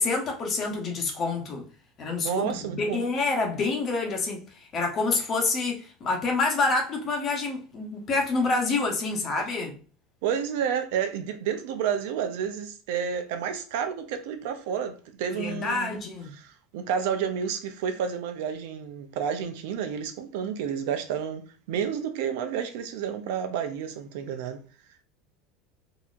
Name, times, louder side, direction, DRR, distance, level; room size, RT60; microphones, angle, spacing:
voice 1, 0.0-1.7 2.0-9.8 15.3-16.3, left 3 dB, 30° left, 1.0 m, -27 dB
voice 2, 2.2-3.0 10.2-16.0 16.7-24.6, right 8 dB, 75° right, 0.7 m, -30 dB
4.1 x 2.8 x 2.5 m
supercardioid pair, 145°, 0 cm